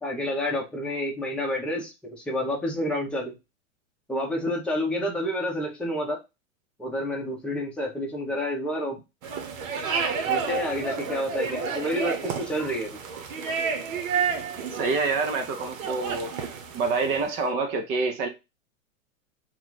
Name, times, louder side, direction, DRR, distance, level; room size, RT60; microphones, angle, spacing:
voice 1, 0.0-3.3 4.1-6.2 6.8-9.0 10.3-13.0, left 1 dB, 5° left, 0.7 m, -29 dB
sound 1, 9.2-17.3, right 6 dB, 70° right, 1.0 m, -31 dB
voice 2, 14.7-16.3 16.7-18.3, right 4 dB, 20° right, 0.3 m, -26 dB
2.9 x 2.3 x 3.8 m
hypercardioid pair, 130°, 41 cm